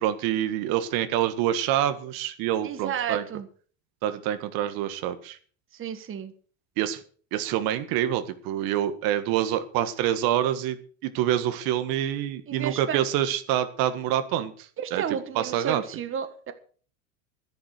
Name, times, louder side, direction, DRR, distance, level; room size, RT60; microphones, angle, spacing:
voice 1, 0.0-3.2 4.0-5.4 6.8-7.0 7.3-10.8 11.0-14.5 14.9-15.0 15.3-15.8, right 11 dB, 65° right, 10 dB, 1.7 m, -26 dB
voice 2, 2.6-3.5 5.7-6.3 12.5-13.1 14.8-16.5, right 8 dB, 30° right, 9 dB, 1.6 m, -32 dB
11.5 x 10.5 x 6.6 m, 0.43 s
supercardioid pair, 110°, 39 cm